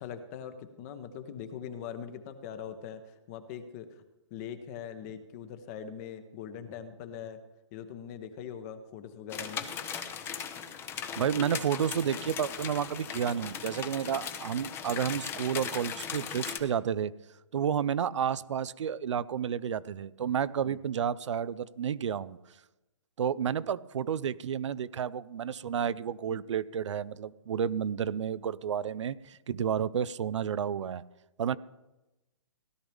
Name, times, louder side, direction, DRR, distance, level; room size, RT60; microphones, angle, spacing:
voice 1, 0.0-3.9 4.3-7.4 7.7-9.6 20.6-20.8, left 8 dB, 30° left, 10 dB, 1.1 m, -42 dB
sound 1, 9.3-16.6, left 8 dB, 15° left, 0.7 m, -38 dB
voice 2, 11.2-17.1 17.5-22.4 23.2-31.0 31.4-31.6, right 8 dB, 70° right, 17 dB, 0.5 m, -31 dB
17.0 x 12.0 x 3.5 m, 1.0 s
hypercardioid pair, 150°, 16 cm